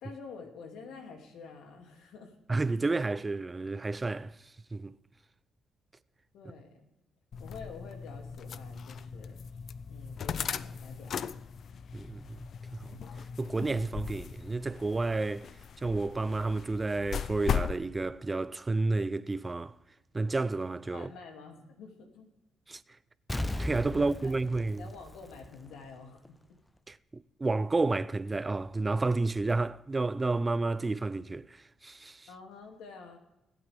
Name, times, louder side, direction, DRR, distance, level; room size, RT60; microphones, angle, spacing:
voice 1, 0.0-2.3 6.3-6.8 7.4-9.4 9.9-11.4 20.9-22.3 24.0-24.3 24.8-26.4 32.3-33.2, left 4 dB, 85° left, 2.4 m, -48 dB
voice 2, 2.5-5.0 11.9-12.4 12.7-13.0 13.4-15.5 15.8-19.7 20.1-21.1 22.7-22.8 23.6-24.9 26.9-32.3, right 3 dB, 25° right, 0.4 m, -31 dB
sound 1, 7.3-17.8, left 7 dB, 60° left, 0.4 m, -38 dB
Explosion, 23.3-25.9 26.2-26.3, left 1 dB, 15° left, 0.7 m, -37 dB
20.5 x 8.8 x 3.4 m
cardioid pair, 90°, 0 cm